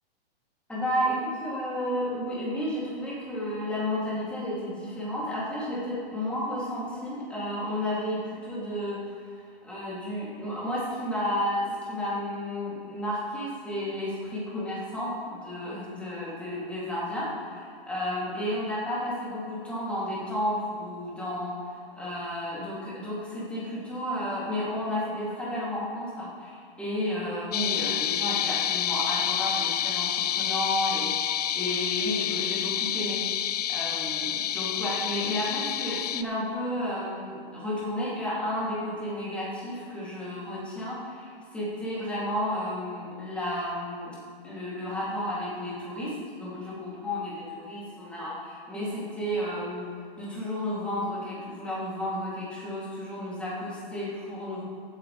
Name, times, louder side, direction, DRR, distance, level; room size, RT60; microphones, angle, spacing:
voice 1, 0.7-9.0 9.6-44.1 44.4-49.9 50.2-54.6, left 1 dB, 5° left, -9 dB, 3.2 m, -32 dB
sound 1, 27.5-36.2, left 10 dB, 40° left, 0.4 m, -28 dB
15.5 x 9.1 x 3.5 m, 2.1 s
hypercardioid pair, 150°, 31 cm